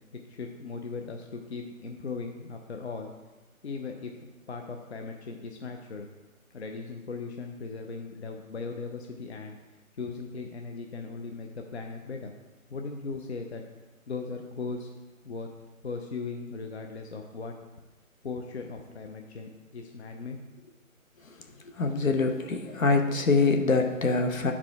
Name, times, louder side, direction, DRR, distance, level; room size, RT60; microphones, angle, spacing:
voice 1, 0.3-3.1 3.6-4.1 4.5-6.1 6.5-9.6 9.9-12.3 12.7-13.6 14.1-14.9 15.2-15.5 15.8-17.5 18.2-20.7 21.3-21.7, left 4 dB, 50° left, 3 dB, 0.7 m, -38 dB
voice 2, 21.8-24.5, left 3 dB, 70° left, 4 dB, 1.1 m, -24 dB
9.5 x 4.9 x 3.5 m, 1.2 s
figure-of-eight pair, 160°, 42 cm